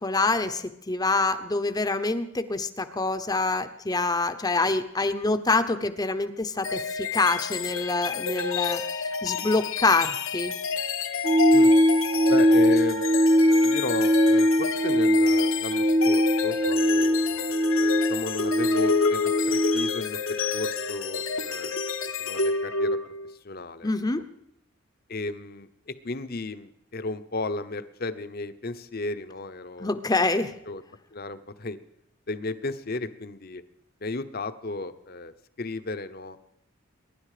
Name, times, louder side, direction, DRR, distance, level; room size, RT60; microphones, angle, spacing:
voice 1, 0.0-8.8 9.2-10.5 23.8-24.2 29.8-30.5, left 3 dB, 20° left, 9 dB, 0.8 m, -26 dB
sound 1, 6.6-23.3, left 5 dB, 75° left, 1.2 m, -29 dB
sound 2, 11.2-19.9, equal, 30° right, 0.8 m, -21 dB
voice 2, 12.3-13.1 13.6-17.3 17.8-21.8 22.2-24.2 25.1-29.9 30.7-30.8 31.1-31.8 32.3-33.6 34.0-35.3 35.6-36.4, left 2 dB, 45° left, 11 dB, 0.9 m, -34 dB
23.5 x 11.0 x 5.0 m, 0.76 s
head